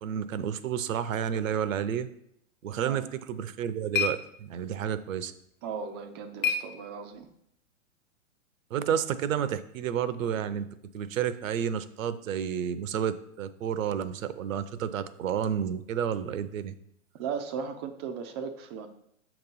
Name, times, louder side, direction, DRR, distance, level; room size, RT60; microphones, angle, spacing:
voice 1, 0.0-2.1 2.6-5.3 8.7-10.7 10.9-16.7, right 8 dB, 70° right, 13 dB, 0.6 m, -30 dB
sound 1, 3.2-7.4, left 6 dB, 70° left, 0.9 m, -35 dB
voice 2, 5.6-7.3 17.1-18.9, right 6 dB, 20° right, 6 dB, 0.3 m, -36 dB
7.5 x 3.0 x 5.3 m, 0.75 s
hypercardioid pair, 125°, 41 cm